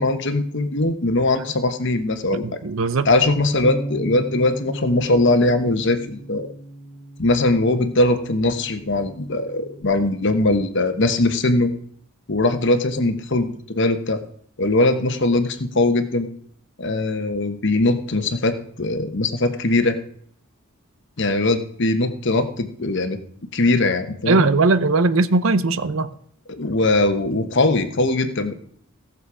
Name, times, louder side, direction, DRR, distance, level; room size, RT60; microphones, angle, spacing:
voice 1, 0.0-2.6 3.0-6.5 7.2-11.7 12.3-14.2 14.6-16.3 16.8-20.0 21.2-23.2 23.5-24.4 26.5-28.5, left 2 dB, 55° left, 9 dB, 1.1 m, -20 dB
voice 2, 2.3-3.1 24.3-26.1, right 3 dB, 65° right, 14 dB, 0.6 m, -19 dB
Bass guitar, 3.6-9.8, right 1 dB, 10° left, 2.2 m, -36 dB
17.0 x 6.7 x 4.8 m, 0.64 s
head